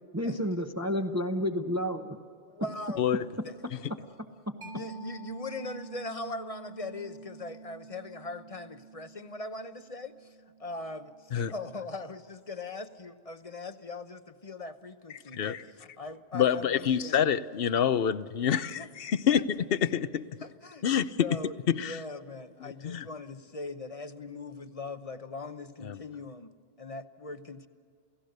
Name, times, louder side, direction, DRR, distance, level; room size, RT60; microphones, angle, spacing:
voice 1, 0.1-2.2 4.5-4.6, equal, 15° right, 4 dB, 0.9 m, -30 dB
voice 2, 2.5-3.0 3.4-3.5 4.7-10.3 10.6-17.3 18.7-18.9 19.3-19.4 20.4-20.9 21.2-27.7, left 3 dB, 35° left, 10 dB, 0.9 m, -40 dB
Mallet percussion, 4.6-11.9, right 5 dB, 50° right, 1.6 m, -48 dB
voice 3, 15.3-15.6 16.3-19.4 19.7-20.3 20.8-21.3 21.7-22.0 22.8-23.1 25.8-26.0, left 8 dB, 65° left, 15 dB, 0.9 m, -27 dB
29.0 x 17.0 x 6.6 m, 2.3 s
omnidirectional pair, 1.1 m